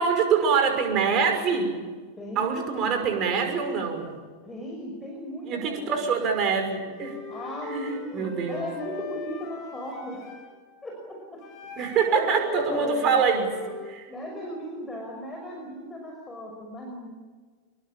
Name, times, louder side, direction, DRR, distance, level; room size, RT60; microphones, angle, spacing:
voice 1, 0.0-1.8 2.4-4.2 5.5-7.2 7.7-8.6 11.8-13.5 13.8-14.1, right 6 dB, 35° right, 5 dB, 5.9 m, -25 dB
voice 2, 2.2-3.3 4.4-6.1 7.3-10.2 10.8-11.4 12.1-13.2 14.1-17.1, equal, 10° left, 0 dB, 5.9 m, -36 dB
Wind instrument woodwind instrument, 6.9-10.6 11.4-14.0, left 5 dB, 30° left, 7.9 m, -40 dB
26.0 x 22.5 x 8.7 m, 1.5 s
figure-of-eight pair, 90°, 0 cm